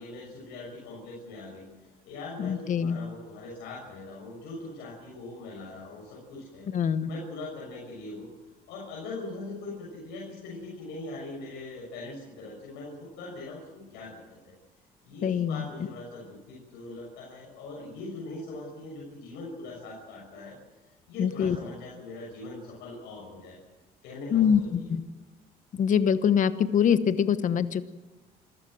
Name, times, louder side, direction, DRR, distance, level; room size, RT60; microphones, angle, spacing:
voice 1, 0.0-1.7 2.0-6.7 7.1-8.3 8.7-14.2 14.4-14.5 15.0-20.6 21.1-23.6 24.0-24.9, left 2 dB, 90° left, -3 dB, 6.4 m, -41 dB
voice 2, 2.4-3.0 6.7-7.1 15.2-15.6 21.2-21.6 24.3-25.0 25.7-27.8, left 8 dB, 50° left, 12 dB, 1.1 m, -24 dB
26.5 x 15.0 x 7.8 m, 1.1 s
cardioid pair, 110°, 17 cm